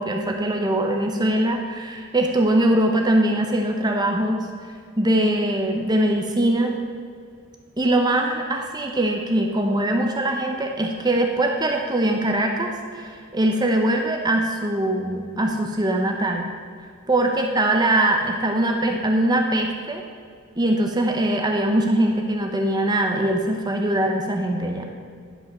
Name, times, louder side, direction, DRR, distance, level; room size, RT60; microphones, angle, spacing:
voice 1, 0.0-4.4 5.0-6.7 7.8-16.4 17.1-20.0 20.6-24.8, right 1 dB, 20° right, 2 dB, 0.8 m, -22 dB
11.0 x 5.6 x 6.1 m, 2.1 s
head